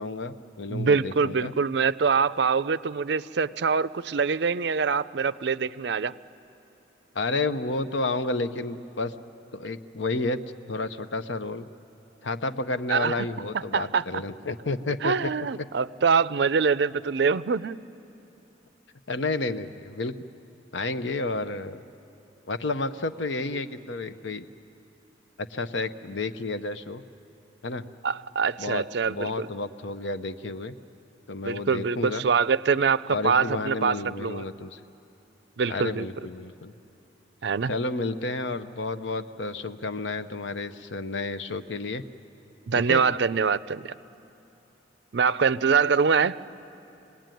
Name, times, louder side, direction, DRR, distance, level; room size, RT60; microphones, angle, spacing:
voice 1, 0.0-1.5 7.1-9.1 9.5-10.4 10.7-11.7 12.2-15.1 19.1-20.2 20.7-21.8 22.4-24.5 25.4-27.0 27.6-27.8 28.6-30.8 31.3-32.2 33.1-34.8 35.7-36.7 37.7-42.1 42.7-43.0, left 3 dB, 75° left, 11 dB, 0.8 m, -31 dB
voice 2, 0.7-6.1 12.9-13.3 13.7-14.0 15.0-17.8 28.0-29.5 31.4-34.4 35.6-36.1 37.4-37.7 42.7-43.9 45.1-46.4, right 5 dB, 60° right, 16 dB, 0.5 m, -24 dB
26.5 x 19.5 x 9.2 m, 2.9 s
head